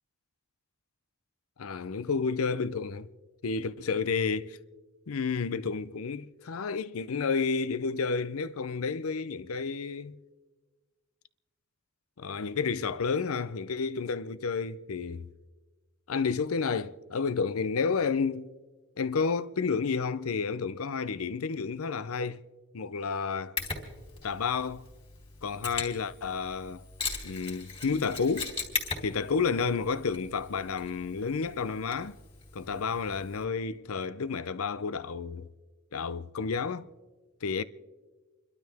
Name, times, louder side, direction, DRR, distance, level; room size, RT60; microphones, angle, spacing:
voice 1, 1.6-3.1 3.4-4.6 5.1-10.2 12.2-15.3 16.1-18.5 19.0-22.4 22.7-23.6 24.2-24.9 25.4-26.8 27.2-28.5 29.0-32.2 32.5-35.5 35.9-36.9 37.4-37.6, left 5 dB, 80° left, 0.6 m, -31 dB
Mechanisms, 23.6-33.4, left 4 dB, 25° left, 3.1 m, -40 dB
29.5 x 12.5 x 3.5 m
head